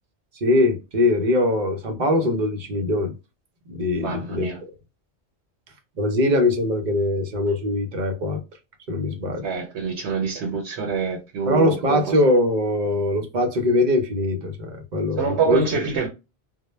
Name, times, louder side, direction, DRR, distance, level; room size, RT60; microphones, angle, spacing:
voice 1, 0.4-3.1 3.7-4.5 6.0-8.4 8.9-9.5 11.5-15.6, left 1 dB, 50° right, 0.7 m, -22 dB
voice 2, 4.0-4.6 9.4-12.0 15.2-16.1, right 5 dB, 85° right, 0.9 m, -25 dB
2.1 x 2.1 x 3.0 m
omnidirectional pair, 1.1 m